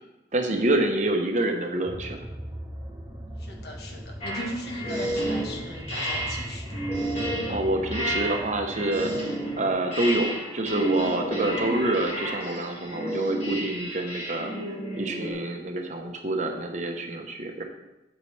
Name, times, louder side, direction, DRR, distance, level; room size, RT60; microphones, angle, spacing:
voice 1, 0.3-2.2 7.5-9.1 9.6-14.5 14.9-17.6, right 1 dB, 40° right, 3 dB, 0.9 m, -27 dB
sound 1, 1.8-9.2, equal, 20° right, 1.3 m, -39 dB
voice 2, 3.4-6.7, left 1 dB, 55° left, 1 dB, 1.4 m, -38 dB
sound 2, 4.2-15.3, right 1 dB, 35° left, 1.9 m, -31 dB
8.2 x 8.1 x 3.3 m, 0.97 s
head